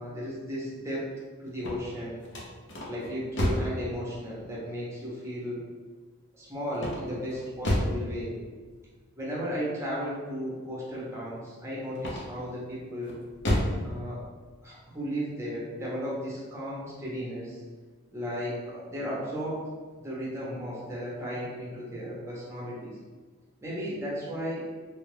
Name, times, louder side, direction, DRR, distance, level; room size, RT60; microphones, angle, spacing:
voice 1, 0.0-2.2 2.8-5.6 6.3-8.4 9.2-13.2 13.8-14.2 14.6-17.6 18.1-19.6 20.0-22.9 23.6-24.6, equal, 15° right, -6 dB, 0.7 m, -35 dB
sound 1, 1.5-3.8 6.7-8.0 11.9-12.5 13.0-13.8, left 1 dB, 55° left, 0.7 m, -30 dB
3.3 x 2.4 x 3.2 m, 1.4 s
head